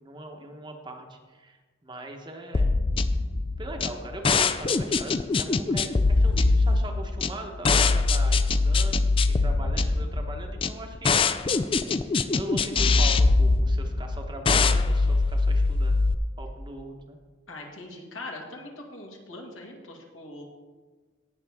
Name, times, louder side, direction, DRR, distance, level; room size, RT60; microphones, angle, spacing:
voice 1, 0.0-2.7 3.6-11.6 12.3-16.0 16.4-17.2, right 1 dB, 20° right, 3 dB, 1.0 m, -40 dB
sound 1, 2.5-16.1, left 3 dB, 25° left, 0.4 m, -23 dB
voice 2, 17.5-20.4, left 2 dB, 75° left, 0 dB, 2.0 m, -41 dB
18.0 x 6.7 x 3.5 m, 1.4 s
head